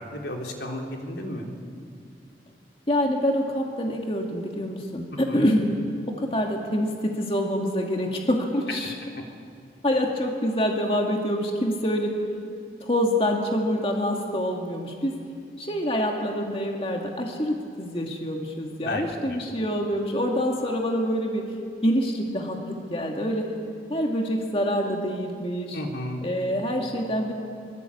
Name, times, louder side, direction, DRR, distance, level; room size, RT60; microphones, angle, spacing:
voice 1, 0.0-1.5 5.1-5.5 8.7-8.8 18.8-19.4 25.7-26.2, left 1 dB, 80° left, 1 dB, 3.8 m, -33 dB
voice 2, 2.9-5.7 6.1-8.9 9.8-12.1 12.8-15.2 15.6-21.5 21.8-23.5 23.9-25.8 26.2-27.3, equal, 30° left, 1 dB, 2.2 m, -26 dB
24.0 x 23.5 x 8.6 m, 2.3 s
head